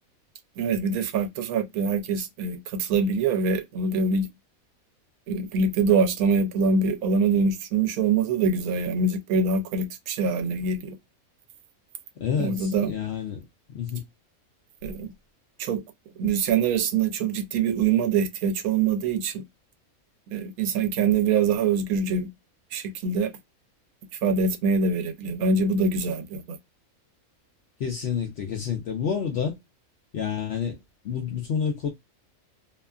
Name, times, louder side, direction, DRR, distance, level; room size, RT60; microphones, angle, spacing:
voice 1, 0.6-4.3 5.3-11.0 12.4-12.9 14.8-15.1 15.6-15.8 16.2-19.4 20.3-22.3 22.7-23.3 24.2-26.6, right 4 dB, 80° right, 1.0 m, -24 dB
voice 2, 12.2-14.1 27.8-29.6 30.1-31.9, left 7 dB, 65° left, 0.7 m, -29 dB
2.8 x 2.3 x 2.3 m
omnidirectional pair, 1.5 m